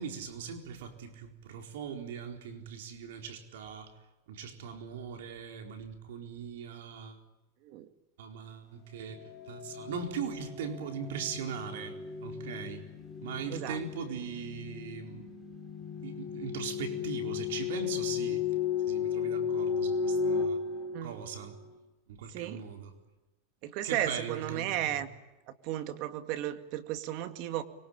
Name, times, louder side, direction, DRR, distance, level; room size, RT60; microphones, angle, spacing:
voice 1, 0.0-3.9 4.3-7.2 8.2-12.8 13.2-15.3 16.0-18.4 18.8-20.6 21.0-21.6 22.1-22.9 23.8-25.0, right 6 dB, 80° right, 4 dB, 4.3 m, -40 dB
sound 1, 9.0-21.7, left 6 dB, 20° left, 4.5 m, -35 dB
voice 2, 22.3-22.6 23.6-25.1 25.6-27.6, right 12 dB, 50° right, 9 dB, 2.1 m, -34 dB
24.5 x 23.5 x 8.9 m, 1.1 s
supercardioid pair, 140°, 0 cm